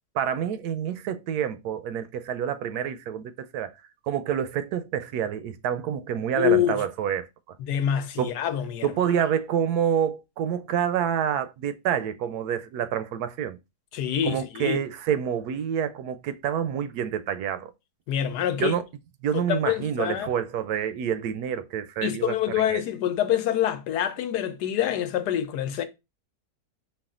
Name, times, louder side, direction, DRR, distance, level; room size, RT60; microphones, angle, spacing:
voice 1, 0.1-3.7 4.1-7.3 8.2-8.3 8.8-13.6 14.3-17.7 18.6-18.8 19.2-22.3 22.7-22.8, right 9 dB, 75° right, 1.1 m, -27 dB
voice 2, 6.3-6.8 7.6-8.9 9.2-9.3 13.9-14.8 18.1-18.8 19.3-20.3 22.0-25.8, left 10 dB, 85° left, 1.2 m, -26 dB
5.4 x 2.5 x 3.6 m
omnidirectional pair, 1.7 m